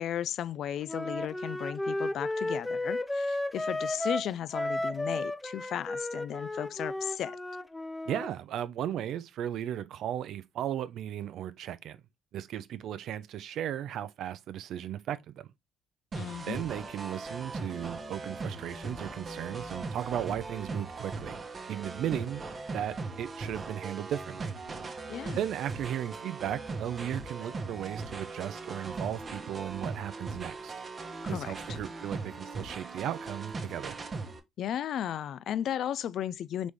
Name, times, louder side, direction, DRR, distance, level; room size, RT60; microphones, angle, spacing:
voice 1, 0.0-7.4 16.1-16.6 25.1-25.4 31.2-31.5 34.6-36.7, left 10 dB, 65° left, 0.3 m, -35 dB
Wind instrument woodwind instrument, 0.9-8.3, left 1 dB, 15° left, 0.5 m, -33 dB
voice 2, 8.1-12.0 12.3-15.5 16.5-21.4 21.7-22.4 22.7-24.5 25.4-30.7 31.3-34.0, right 10 dB, 70° right, 0.4 m, -36 dB
sound 1, 16.1-34.4, right 3 dB, 40° right, 0.9 m, -39 dB
4.0 x 3.2 x 3.4 m
hypercardioid pair, 55°, 0 cm